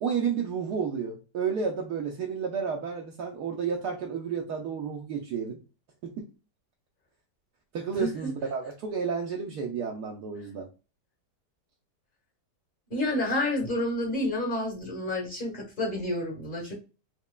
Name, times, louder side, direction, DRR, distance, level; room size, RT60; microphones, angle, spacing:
voice 1, 0.0-5.6 6.0-6.2 7.7-10.7, right 6 dB, 70° right, 1.1 m, -31 dB
voice 2, 8.0-8.3 12.9-16.7, left 1 dB, 35° left, 1.2 m, -29 dB
4.3 x 2.8 x 2.2 m
omnidirectional pair, 1.9 m